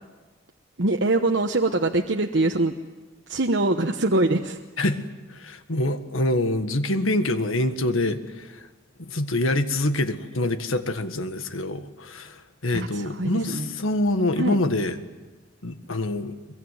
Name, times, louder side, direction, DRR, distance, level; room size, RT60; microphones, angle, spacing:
voice 1, 0.8-2.7 3.3-4.6 12.7-13.7 14.4-14.6, right 2 dB, 60° right, 3 dB, 1.1 m, -23 dB
voice 2, 4.8-8.7 9.0-15.0 15.6-16.4, left 1 dB, 80° left, 9 dB, 1.7 m, -26 dB
23.0 x 23.0 x 9.5 m, 1.2 s
head